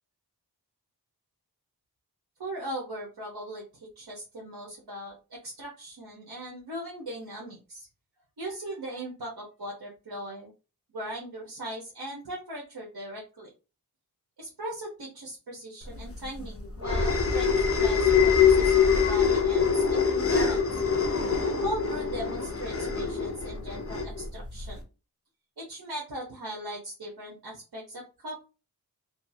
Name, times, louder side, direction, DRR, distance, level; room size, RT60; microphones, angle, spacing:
voice 1, 2.4-7.9 8.4-10.5 10.9-13.5 14.4-20.7 21.6-24.8 25.6-28.4, right 1 dB, 70° right, -3 dB, 0.9 m, -39 dB
sound 1, 16.0-24.8, left 6 dB, 35° left, 0.6 m, -24 dB
2.7 x 2.4 x 2.6 m, 0.32 s
wide cardioid pair, 50°, 39 cm